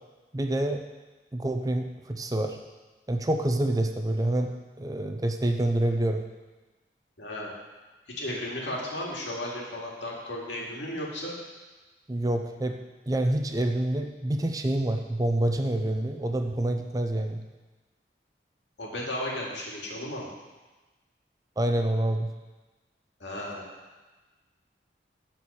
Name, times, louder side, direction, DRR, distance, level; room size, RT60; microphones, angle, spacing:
voice 1, 0.3-0.8 1.3-2.6 3.1-6.3 12.1-12.8 13.1-17.4 21.6-22.3, right 1 dB, 20° right, 5 dB, 0.5 m, -27 dB
voice 2, 7.2-7.5 8.2-11.4 18.8-20.3 23.2-23.6, left 1 dB, 90° left, -3 dB, 2.3 m, -34 dB
11.0 x 4.5 x 7.0 m, 1.2 s
head